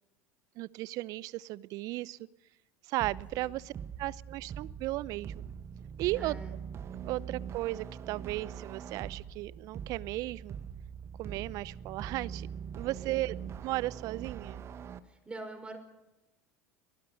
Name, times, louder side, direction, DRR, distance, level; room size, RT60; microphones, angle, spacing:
voice 1, 0.6-2.2 2.9-3.6 4.0-5.3 6.0-6.4 7.0-10.6 11.2-12.5 12.8-13.4 13.6-14.6, right 18 dB, 50° right, 21 dB, 0.7 m, -35 dB
sound 1, 3.0-15.0, right 8 dB, 35° right, 1.3 m, -42 dB
voice 2, 6.1-6.6 13.1-13.3 15.0-15.8, right 2 dB, 15° right, 5 dB, 5.8 m, -45 dB
24.5 x 18.5 x 6.5 m, 0.95 s
figure-of-eight pair, 75°, 8 cm